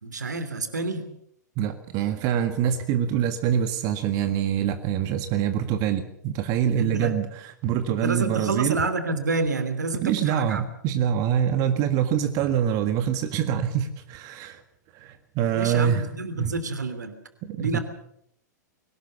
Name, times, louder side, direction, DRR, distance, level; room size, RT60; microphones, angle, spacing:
voice 1, 0.0-1.1 6.8-7.2 7.9-10.6 15.5-17.2 17.6-17.8, right 3 dB, 75° right, 10 dB, 3.1 m, -28 dB
voice 2, 1.6-8.8 9.9-14.6 14.9-16.0 16.4-16.5 17.4-17.8, right 9 dB, 40° right, 8 dB, 1.7 m, -25 dB
22.0 x 18.5 x 7.1 m, 0.73 s
figure-of-eight pair, 100°, 10 cm